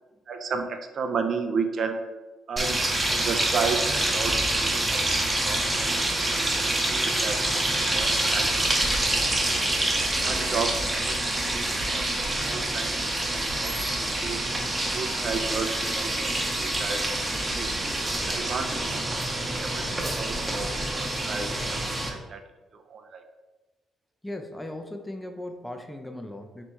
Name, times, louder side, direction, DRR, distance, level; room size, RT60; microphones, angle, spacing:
voice 1, 0.3-2.0 2.5-6.3 6.7-9.6 10.1-11.2 11.5-14.5 14.9-17.8 18.2-19.9 20.1-22.4 22.7-23.2, right 5 dB, 55° right, 6 dB, 0.4 m, -34 dB
sound 1, 2.6-22.1, right 1 dB, 20° right, 0.8 m, -26 dB
voice 2, 24.2-26.6, left 1 dB, 10° left, 5 dB, 0.5 m, -37 dB
3.3 x 3.0 x 4.3 m, 1.2 s
cardioid pair, 90°, 0 cm